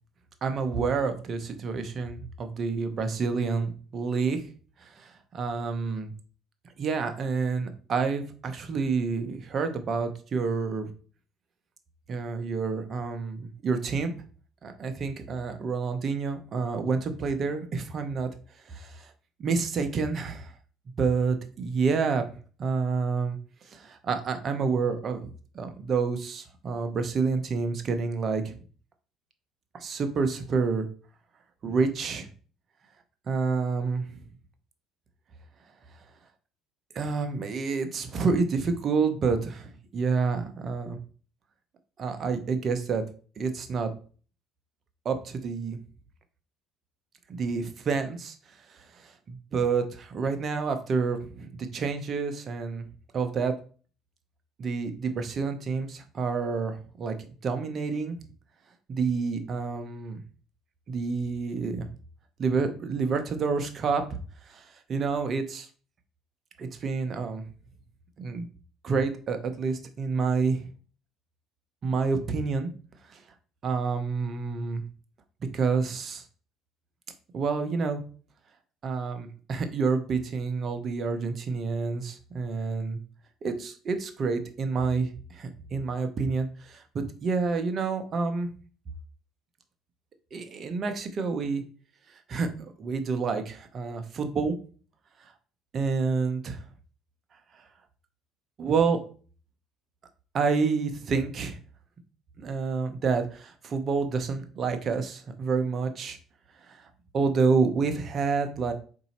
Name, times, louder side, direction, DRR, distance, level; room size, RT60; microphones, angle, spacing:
voice 1, 0.4-4.4 4.8-6.1 6.8-10.9 12.1-14.1 14.6-18.3 18.7-19.1 19.4-20.5 21.0-22.2 22.6-23.4 23.7-28.6 29.7-30.9 31.6-32.3 33.3-34.2 36.9-41.0 42.0-43.0 43.4-43.9 45.0-45.8 47.3-48.4 49.0-52.8 53.1-53.5 54.6-57.1 57.4-58.2 58.9-60.2 60.9-61.9 62.4-64.2 64.5-65.7 66.6-67.4 68.2-68.4 68.8-70.6 71.8-72.7 73.1-73.2 73.6-74.8 75.5-76.2 77.3-78.0 78.8-83.0 83.4-88.5 90.3-91.6 92.3-94.5 95.7-96.6 98.6-99.0 100.3-101.6 102.4-106.2 106.7-106.8 107.1-108.7, right 4 dB, 45° right, 7 dB, 0.8 m, -28 dB
4.0 x 2.7 x 4.2 m, 0.40 s
hypercardioid pair, 70°, 0 cm